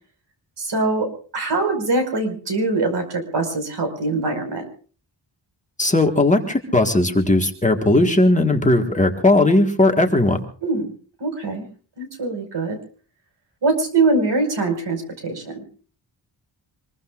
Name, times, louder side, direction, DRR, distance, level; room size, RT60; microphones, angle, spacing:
voice 1, 0.6-4.7 10.6-10.9 11.2-11.7 12.0-12.8 13.6-15.6, right 3 dB, 70° right, 6 dB, 5.3 m, -23 dB
voice 2, 5.8-10.4, left 2 dB, 15° left, 3 dB, 1.6 m, -17 dB
25.5 x 21.5 x 2.5 m, 0.41 s
wide cardioid pair, 175°, 43 cm